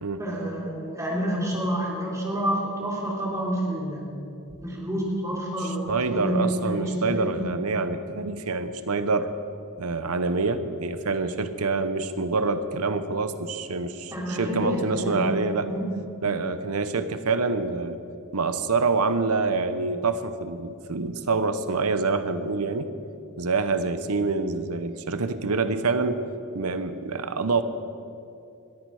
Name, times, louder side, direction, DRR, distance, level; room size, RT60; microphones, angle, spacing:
voice 1, 0.2-4.0 4.6-7.5 14.1-15.4 15.7-16.0, right 1 dB, 15° right, -3 dB, 3.5 m, -28 dB
voice 2, 5.6-9.3 9.8-15.7 16.2-18.0 18.3-22.9 23.4-26.2 26.5-27.6, right 4 dB, 85° right, 11 dB, 0.9 m, -26 dB
21.0 x 13.5 x 4.9 m, 2.6 s
head